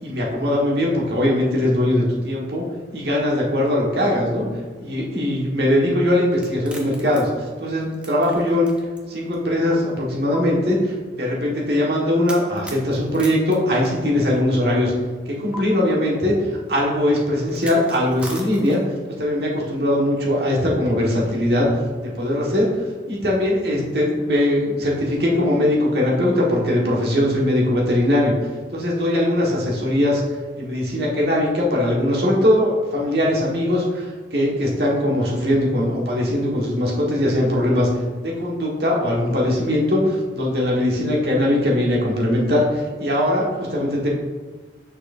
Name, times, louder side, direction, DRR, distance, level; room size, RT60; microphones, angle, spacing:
voice 1, 0.0-2.6 2.9-4.5 4.8-8.7 9.1-14.9 15.3-16.4 16.7-18.8 19.2-28.3 28.7-30.2 30.6-37.9 38.2-44.1, left 1 dB, 60° right, -4 dB, 1.5 m, -20 dB
sound 1, 6.3-9.0 9.3-9.4 10.3-10.4 12.3-14.4 15.5-15.6 17.5-19.0, right 1 dB, 5° right, 0.6 m, -39 dB
6.4 x 6.2 x 2.6 m, 1.4 s
head